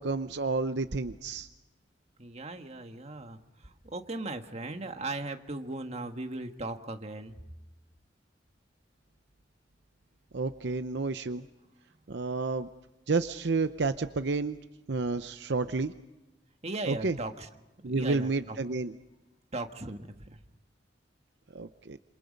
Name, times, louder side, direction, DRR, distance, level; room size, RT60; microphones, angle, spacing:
voice 1, 0.0-1.5 10.3-11.4 12.1-12.7 13.1-14.6 14.9-15.9 16.9-17.2 17.8-18.9 21.5-22.0, right 3 dB, 70° right, 10 dB, 0.7 m, -30 dB
voice 2, 2.2-7.4 16.6-17.5 17.8-18.6 19.5-20.4, right 2 dB, 35° right, 6 dB, 1.6 m, -38 dB
27.5 x 27.0 x 5.3 m, 1.0 s
head